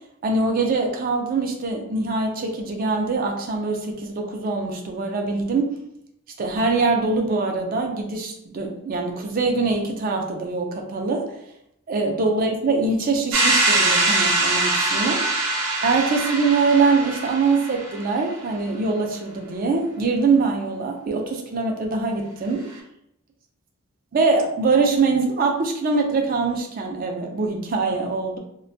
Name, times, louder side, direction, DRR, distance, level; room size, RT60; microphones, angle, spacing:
voice 1, 0.2-5.7 6.4-11.2 11.9-15.2 15.8-22.7 24.1-28.4, right 3 dB, 40° right, 2 dB, 0.3 m, -23 dB
sound 1, 13.3-18.1, right 2 dB, 85° right, 0.6 m, -22 dB
2.5 x 2.2 x 2.5 m, 0.78 s
head